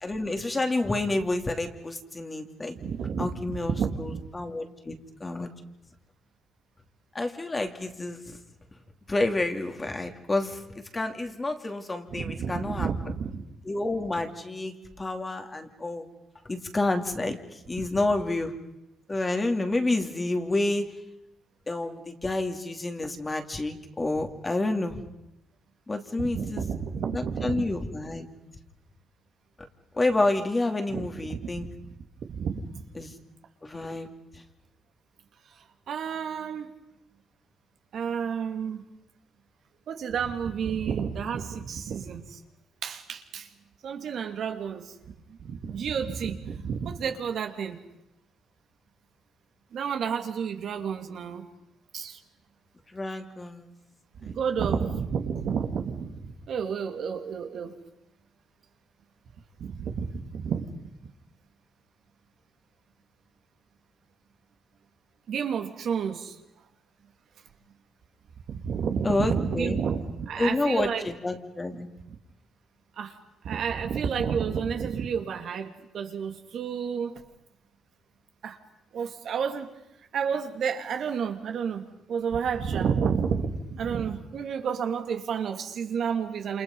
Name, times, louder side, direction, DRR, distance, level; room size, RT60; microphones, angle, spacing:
voice 1, 0.0-2.8 3.2-5.5 7.1-8.2 9.1-10.6 10.9-12.9 13.6-16.1 16.5-18.5 19.1-20.9 21.7-25.0 25.9-26.6 27.1-28.3 29.9-31.7 33.0-33.1 33.6-34.1 52.9-53.7 54.2-54.4 54.7-54.8 69.0-69.8 70.4-71.9, left 2 dB, 25° left, 5 dB, 2.8 m, -29 dB
voice 2, 2.8-4.3 12.1-13.4 26.2-27.6 30.9-31.7 32.3-32.8 35.9-36.7 37.9-38.8 39.9-42.4 42.8-43.5 43.8-44.9 45.4-47.8 49.7-51.4 51.9-52.2 54.2-57.7 59.6-60.7 65.3-66.4 68.5-71.1 72.1-72.2 73.0-73.2 73.4-77.2 78.4-78.6 78.9-79.7 80.1-81.8 82.1-86.6, right 6 dB, 65° right, 5 dB, 2.5 m, -30 dB
28.0 x 28.0 x 5.5 m, 0.88 s
cardioid pair, 90°, 0 cm